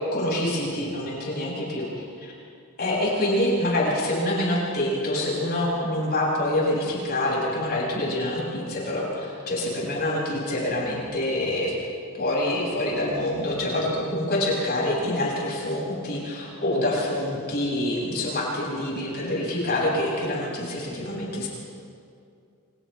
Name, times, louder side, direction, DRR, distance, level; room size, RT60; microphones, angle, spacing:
voice 1, 0.1-1.9 2.2-2.3 2.8-11.7 12.1-21.5, left 1 dB, 45° left, -5 dB, 7.8 m, -26 dB
29.5 x 28.5 x 3.6 m, 2.4 s
head